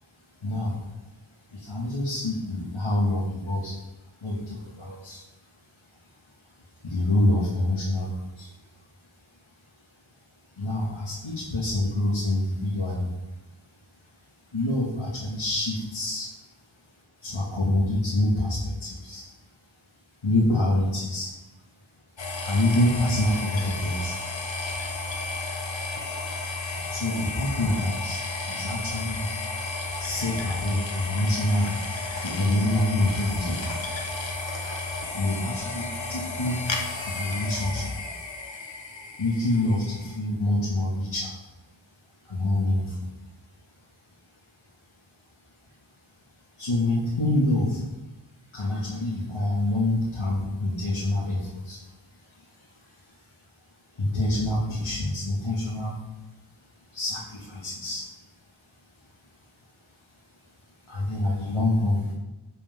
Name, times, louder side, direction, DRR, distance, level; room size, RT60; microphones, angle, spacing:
voice 1, 0.0-16.4 16.9-19.6 20.2-21.3 22.4-24.2 26.1-26.2 26.9-33.7 35.1-38.5 39.2-41.8 42.2-43.3 43.9-44.0 44.6-44.7 45.7-45.9 46.5-47.9 48.5-56.1 56.5-62.1, left 1 dB, 85° left, -7 dB, 2.5 m, -28 dB
sound 1, 22.2-40.2, left 3 dB, 65° left, 1.6 m, -33 dB
13.5 x 8.5 x 3.9 m, 1.0 s
wide cardioid pair, 50°, 47 cm